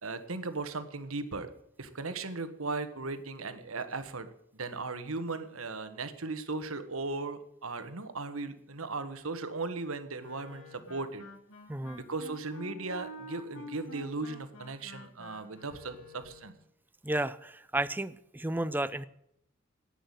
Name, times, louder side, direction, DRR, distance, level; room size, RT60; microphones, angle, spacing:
voice 1, 0.0-1.5 1.8-4.3 4.5-11.2 12.0-16.5, right 3 dB, 80° right, 10 dB, 1.4 m, -37 dB
Wind instrument woodwind instrument, 10.2-16.6, left 1 dB, 85° left, 3.3 m, -48 dB
voice 2, 17.0-19.0, right 1 dB, 10° right, 14 dB, 0.5 m, -32 dB
10.5 x 9.1 x 9.2 m, 0.76 s
head